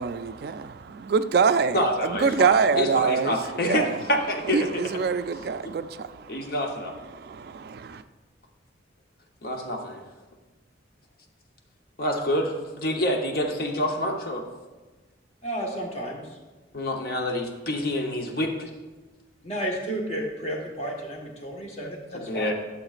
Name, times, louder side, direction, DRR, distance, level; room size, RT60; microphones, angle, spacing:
voice 1, 0.0-3.4 3.6-4.0 4.5-6.5 7.1-8.0, right 5 dB, 55° right, 0.3 m, -25 dB
voice 2, 1.7-4.7 6.3-6.9 9.4-10.0 12.0-14.4 16.7-18.7 21.8-22.5, equal, 50° left, 1.0 m, -27 dB
voice 3, 15.4-16.2 19.4-22.5, right 1 dB, 35° left, 1.4 m, -32 dB
11.5 x 7.1 x 2.5 m
head